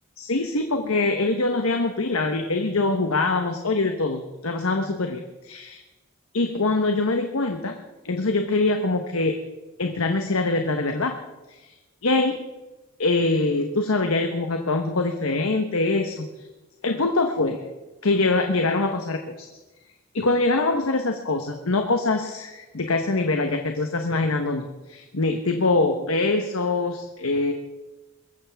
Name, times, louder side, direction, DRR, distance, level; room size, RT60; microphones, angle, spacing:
voice 1, 0.2-5.8 6.3-7.8 8.0-9.4 9.8-11.1 11.5-11.8 12.0-12.4 13.0-16.3 16.8-17.6 18.0-19.5 20.1-27.5, left 3 dB, 90° left, 5 dB, 1.1 m, -24 dB
23.0 x 14.5 x 3.5 m, 1.1 s
head